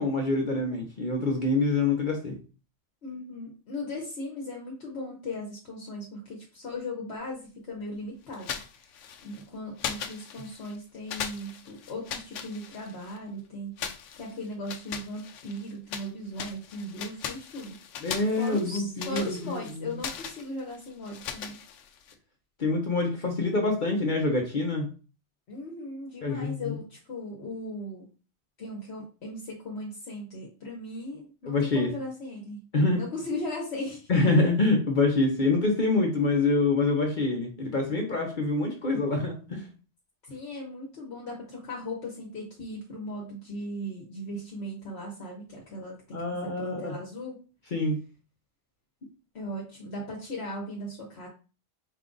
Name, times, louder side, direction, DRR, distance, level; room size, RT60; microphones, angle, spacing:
voice 1, 0.0-2.4 18.0-20.0 22.6-24.9 26.2-26.8 31.4-31.9 32.7-33.0 34.1-39.7 46.1-46.9 47.7-48.0, left 3 dB, 45° left, 1 dB, 0.9 m, -26 dB
voice 2, 3.0-8.5 8.8-8.9 9.2-13.8 14.2-17.8 18.4-21.6 25.5-28.1 28.6-34.1 40.3-47.4 49.3-51.3, left 1 dB, 60° left, -1 dB, 1.2 m, -38 dB
sound 1, 8.3-9.4 9.8-10.8 11.1-13.2 13.8-16.1 16.4-22.1, left 7 dB, 90° left, 0.9 m, -39 dB
4.6 x 2.3 x 3.8 m, 0.35 s
omnidirectional pair, 1.2 m